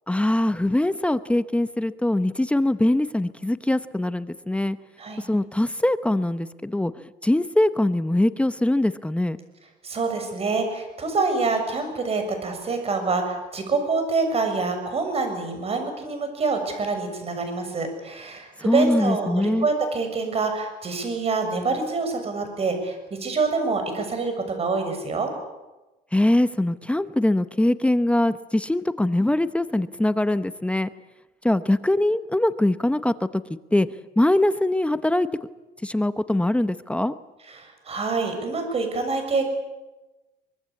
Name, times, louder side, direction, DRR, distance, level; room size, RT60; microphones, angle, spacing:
voice 1, 0.1-4.8 5.3-6.9 7.2-9.4 18.6-19.7 26.1-30.9 31.4-33.9 34.2-35.3 35.8-37.1, left 1 dB, 5° left, 12 dB, 0.9 m, -22 dB
voice 2, 9.8-25.3 37.5-39.5, right 4 dB, 35° right, 6 dB, 6.9 m, -26 dB
24.0 x 23.0 x 8.5 m, 1.1 s
cardioid pair, 110°, 17 cm